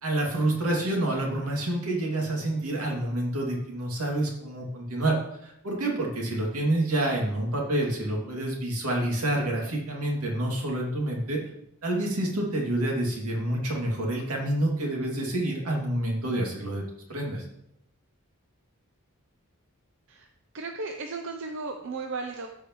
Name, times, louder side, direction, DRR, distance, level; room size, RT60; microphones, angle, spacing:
voice 1, 0.0-5.2 5.4-11.4 11.8-16.8 17.1-17.4, right 1 dB, 85° right, -1 dB, 2.4 m, -28 dB
voice 2, 20.5-22.5, right 3 dB, 60° right, 4 dB, 0.6 m, -35 dB
14.5 x 5.0 x 3.1 m, 0.77 s
head